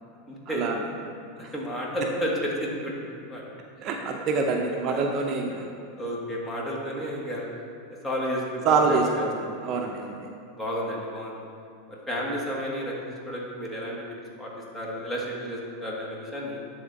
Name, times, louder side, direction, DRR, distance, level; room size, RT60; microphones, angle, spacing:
voice 1, 0.3-0.6 1.5-2.9 3.3-3.4 4.7-5.3 6.0-7.5 8.0-9.2 10.5-11.4 11.9-14.0 14.4-16.6, equal, 15° left, -3 dB, 1.6 m, -32 dB
voice 2, 3.8-5.6 8.6-9.1 9.6-10.2, right 4 dB, 45° right, 2 dB, 0.6 m, -25 dB
10.5 x 3.6 x 4.0 m, 2.5 s
hypercardioid pair, 110°, 0 cm